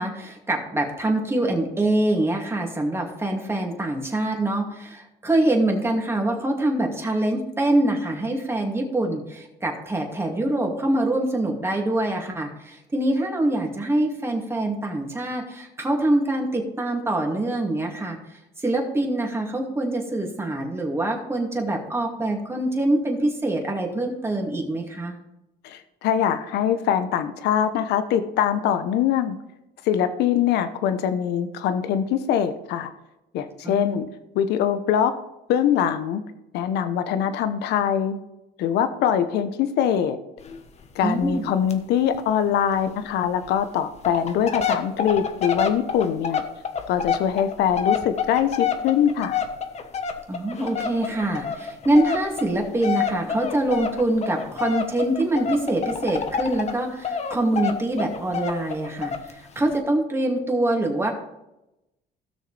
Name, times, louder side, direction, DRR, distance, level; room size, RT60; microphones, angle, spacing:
voice 1, 0.0-18.2 18.6-25.2 33.6-34.0 41.0-41.5 50.3-61.1, right 1 dB, 15° right, 1 dB, 2.5 m, -24 dB
voice 2, 25.6-29.4 29.8-32.9 33.3-34.1 34.3-35.2 35.5-36.2 36.5-38.2 38.6-40.2 40.9-46.4 46.9-49.4, left 9 dB, 80° left, 10 dB, 0.9 m, -23 dB
sound 1, 40.4-40.6 40.8-40.9 41.2-41.4 41.7-41.8 42.1-42.2 42.8-42.9 43.5-43.6 44.0-56.8 57.0-59.3 59.7-59.8, left 6 dB, 40° left, 1.2 m, -28 dB
17.0 x 6.5 x 3.4 m, 0.91 s
cardioid pair, 110°, 17 cm